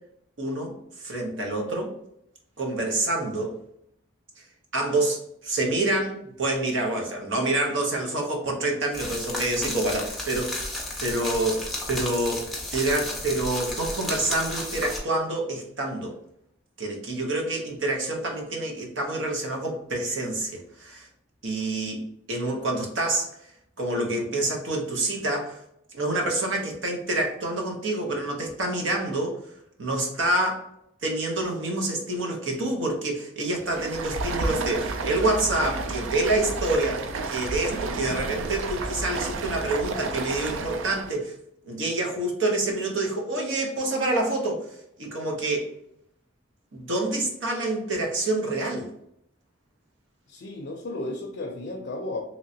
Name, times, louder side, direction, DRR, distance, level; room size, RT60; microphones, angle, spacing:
voice 1, 0.4-0.8 1.0-1.9 2.6-3.5 4.7-10.6 11.0-16.1 16.8-21.1 21.4-22.0 22.3-23.3 23.8-25.6 25.9-29.4 29.8-30.6 31.0-41.3 41.6-45.7 46.7-48.9, right 2 dB, 70° right, 1 dB, 0.8 m, -27 dB
sound 1, 8.9-15.0, left 1 dB, ahead, 0.5 m, -33 dB
Stream, 33.6-41.2, right 3 dB, 90° right, 0.4 m, -31 dB
voice 2, 50.3-52.2, left 2 dB, 60° left, 2 dB, 0.5 m, -33 dB
3.1 x 3.0 x 2.7 m, 0.73 s
head